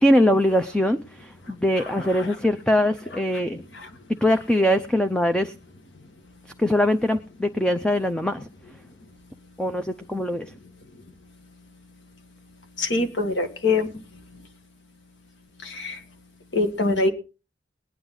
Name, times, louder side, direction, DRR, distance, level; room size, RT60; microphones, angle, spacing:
voice 1, 0.0-3.6 4.2-5.5 6.6-8.5 9.6-10.5, equal, 5° left, 7 dB, 0.6 m, -22 dB
voice 2, 12.8-13.9 15.6-16.0 16.5-17.1, left 3 dB, 90° left, 6 dB, 1.9 m, -24 dB
19.5 x 9.8 x 3.9 m, 0.33 s
head